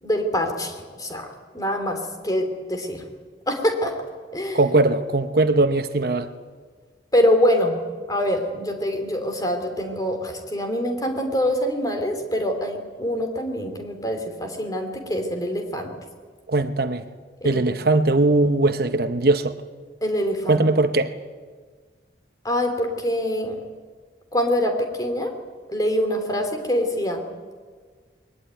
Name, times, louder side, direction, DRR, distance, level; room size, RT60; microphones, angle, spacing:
voice 1, 0.0-1.2 1.5-3.0 3.5-3.9 4.3-4.6 7.1-7.8 8.1-15.9 17.4-17.6 20.0-20.6 22.4-23.6 24.3-25.3 25.7-27.2, equal, 20° left, 3.1 m, -24 dB
voice 2, 4.5-6.3 16.5-17.0 17.4-19.5 20.5-21.1, right 2 dB, 60° right, 1.0 m, -20 dB
21.5 x 20.0 x 9.1 m
head